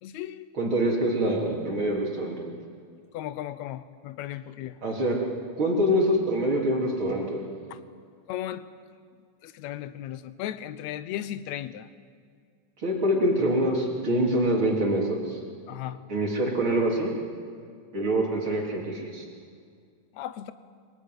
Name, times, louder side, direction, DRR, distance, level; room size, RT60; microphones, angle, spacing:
voice 1, 0.0-0.8 3.1-4.8 7.7-7.8 8.3-8.7 9.4-11.9 15.7-16.0 20.1-20.5, left 12 dB, 75° left, 13 dB, 2.1 m, -36 dB
voice 2, 0.5-2.4 4.8-5.2 5.6-7.5 12.8-15.4 16.1-17.1 17.9-19.3, right 1 dB, 40° right, -1 dB, 4.0 m, -25 dB
25.0 x 19.5 x 9.6 m, 2.2 s
omnidirectional pair, 3.4 m